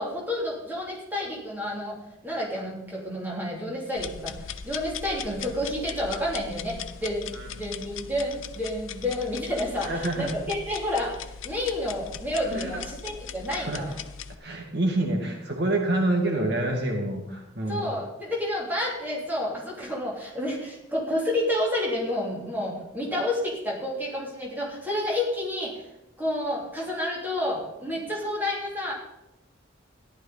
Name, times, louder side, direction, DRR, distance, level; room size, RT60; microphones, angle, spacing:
voice 1, 0.0-2.0 2.2-14.0 17.6-25.8 26.2-28.9, left 1 dB, 10° right, -4 dB, 3.1 m, -30 dB
sound 1, 4.0-14.3, left 7 dB, 85° left, 0.7 m, -39 dB
voice 2, 9.9-10.3 12.5-12.7 13.5-13.8 14.4-17.8, right 2 dB, 55° right, 1 dB, 1.9 m, -27 dB
14.0 x 11.0 x 4.1 m, 0.92 s
head